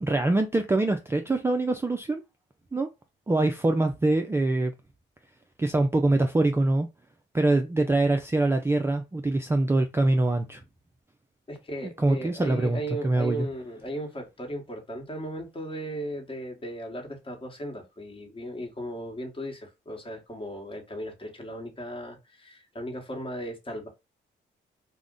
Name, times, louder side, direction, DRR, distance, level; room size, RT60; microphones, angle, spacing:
voice 1, 0.0-2.2 2.7-2.9 3.3-4.7 5.6-6.9 7.3-10.6 11.8-13.5, right 2 dB, 10° right, 0.3 m, -24 dB
voice 2, 11.5-23.9, equal, 25° left, 1.1 m, -36 dB
2.4 x 2.1 x 3.7 m
cardioid pair, 90°, 20 cm